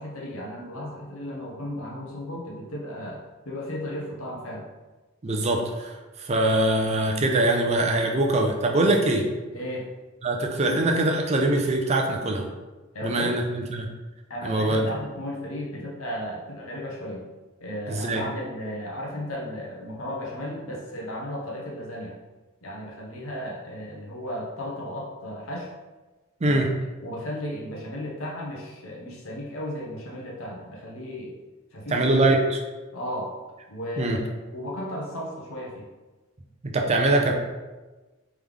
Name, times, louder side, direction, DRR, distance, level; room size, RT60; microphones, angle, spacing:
voice 1, 0.0-4.7 9.5-9.9 10.6-10.8 12.9-13.4 14.3-17.3 17.6-22.2 22.6-25.7 26.4-26.6 27.0-31.4 31.7-32.0 32.9-33.4 33.7-34.3 34.5-35.9, left 1 dB, 80° left, -2 dB, 1.0 m, -35 dB
voice 2, 5.2-9.3 10.2-12.5 13.0-13.9 14.4-14.9 17.9-18.2 26.4-26.7 31.9-32.6 34.0-34.2 36.6-37.3, right 2 dB, 30° right, 2 dB, 0.5 m, -23 dB
3.6 x 3.2 x 3.5 m, 1.2 s
head